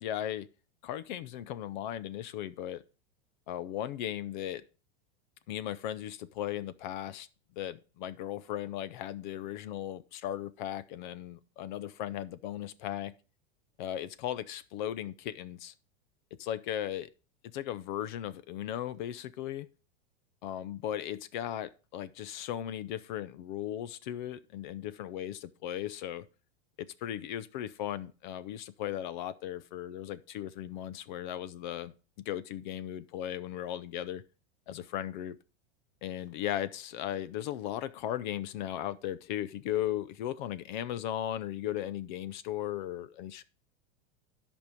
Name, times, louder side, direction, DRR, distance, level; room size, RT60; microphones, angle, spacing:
voice 1, 0.0-0.5 0.8-2.8 3.5-4.6 5.5-7.3 7.6-13.1 13.8-15.7 16.4-17.1 17.5-19.7 20.4-26.3 27.0-31.9 32.3-34.2 34.7-35.4 36.0-43.4, left 11 dB, 45° left, 0.6 m, -37 dB
11.0 x 5.4 x 5.0 m
supercardioid pair, 160°, 34 cm